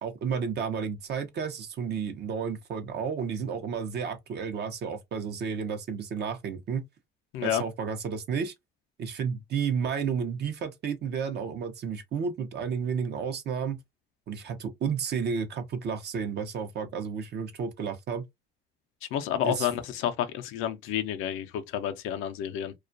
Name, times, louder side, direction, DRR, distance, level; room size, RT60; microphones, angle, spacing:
voice 1, 0.0-6.8 7.4-8.5 9.0-13.8 14.3-18.2 19.4-19.7, right 6 dB, 55° right, 0.6 m, -32 dB
voice 2, 19.1-22.7, left 10 dB, 80° left, 0.5 m, -30 dB
2.3 x 2.1 x 2.5 m
supercardioid pair, 85°, 21 cm